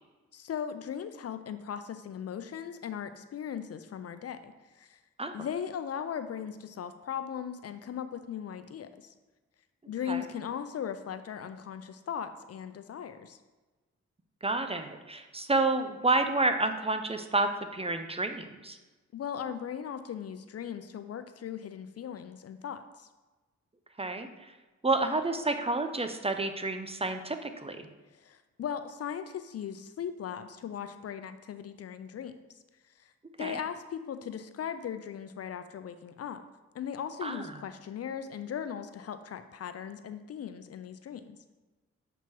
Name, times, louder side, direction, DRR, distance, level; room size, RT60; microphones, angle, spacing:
voice 1, 0.3-5.0 5.3-9.1 9.9-13.4 19.1-23.1 28.2-32.4 33.0-33.1 33.4-36.4 36.7-41.4, left 8 dB, 55° left, 10 dB, 0.4 m, -38 dB
voice 2, 14.4-18.8 24.0-24.5 24.8-27.9 33.4-33.6 37.2-37.5, right 2 dB, 20° right, 7 dB, 0.5 m, -30 dB
7.0 x 3.0 x 4.5 m, 1.2 s
cardioid pair, 55°, 30 cm